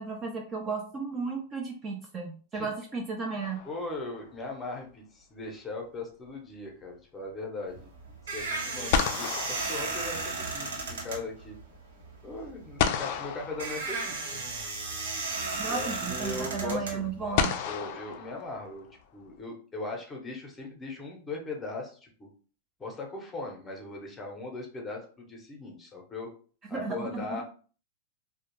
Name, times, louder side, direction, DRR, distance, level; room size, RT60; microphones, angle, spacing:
voice 1, 0.0-3.7 15.6-17.5 26.7-27.4, right 4 dB, 25° right, 1 dB, 0.4 m, -34 dB
sound 1, 3.4-4.3 8.4-8.5 8.9-10.6 12.8-14.4 15.7-15.8 17.4-19.0, left 7 dB, 50° left, 0.3 m, -32 dB
voice 2, 3.6-7.9 8.2-11.6 12.2-14.4 15.7-18.9 19.1-22.3 22.8-26.3 26.7-27.4, left 2 dB, 15° left, 0 dB, 0.7 m, -39 dB
sound 2, 7.7-17.6, right 3 dB, 90° right, 0.8 m, -35 dB
2.3 x 2.1 x 3.0 m, 0.40 s
supercardioid pair, 140°, 0 cm